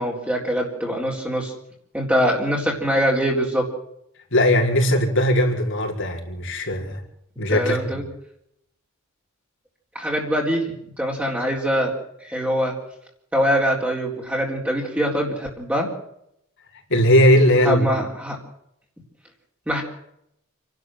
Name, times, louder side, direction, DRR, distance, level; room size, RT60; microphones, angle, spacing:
voice 1, 0.0-1.5 1.9-3.6 7.5-8.0 9.9-10.6 11.0-11.9 12.2-12.7 13.3-15.9 17.6-18.4 19.7-19.8, equal, 5° right, -3 dB, 4.0 m, -23 dB
voice 2, 4.3-7.0 7.4-7.8 16.9-17.9, equal, 60° left, 0 dB, 5.2 m, -18 dB
29.0 x 12.0 x 7.8 m, 0.76 s
head